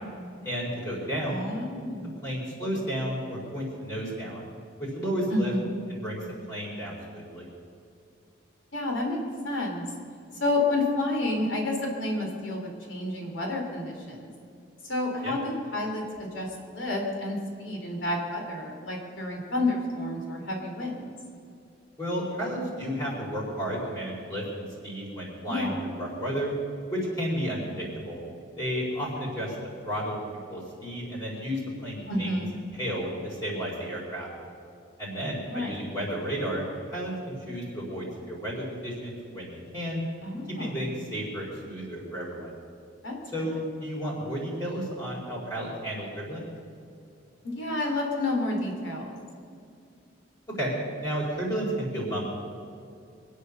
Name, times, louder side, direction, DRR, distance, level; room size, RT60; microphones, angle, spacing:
voice 1, 0.4-1.5 2.2-4.4 4.8-5.5 5.9-6.2 6.5-7.4 15.2-15.3 22.0-26.5 26.9-28.2 28.6-29.5 29.8-30.2 30.5-32.4 32.7-34.3 35.0-40.0 40.6-42.5 43.3-46.4 50.6-52.2, equal, 20° left, -6 dB, 4.5 m, -32 dB
voice 2, 1.3-2.2 5.3-5.8 8.7-9.8 10.4-14.3 14.8-21.1 25.5-25.8 32.1-32.6 35.5-35.7 40.2-40.9 43.0-43.5 47.4-49.1, left 2 dB, 80° left, 1 dB, 3.0 m, -30 dB
24.0 x 8.4 x 6.8 m, 2.5 s
head